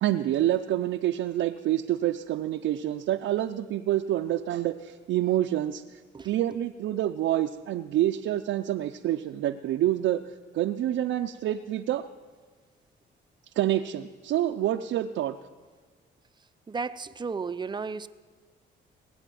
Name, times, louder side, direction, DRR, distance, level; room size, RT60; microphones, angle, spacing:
voice 1, 0.0-5.8 6.2-10.2 10.5-12.0 13.6-15.4, right 12 dB, 75° right, 5 dB, 0.6 m, -27 dB
voice 2, 16.7-18.1, right 5 dB, 20° right, 12 dB, 0.6 m, -33 dB
19.0 x 8.0 x 9.2 m, 1.5 s
cardioid pair, 90°, 20 cm